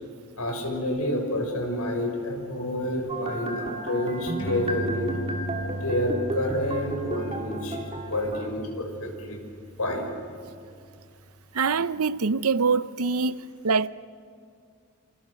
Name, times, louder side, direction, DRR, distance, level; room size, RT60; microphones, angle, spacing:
voice 1, 0.4-5.2 5.7-7.8 8.1-9.4 9.8-10.1, left 1 dB, 85° left, 6.4 m, -29 dB
sound 1, 3.1-8.5, right 1 dB, 25° right, 2.5 m, -33 dB
sound 2, 4.4-11.2, right 1 dB, 60° left, 6.0 m, -37 dB
voice 2, 11.5-13.9, right 4 dB, 75° right, 0.7 m, -24 dB
30.0 x 28.0 x 6.5 m
head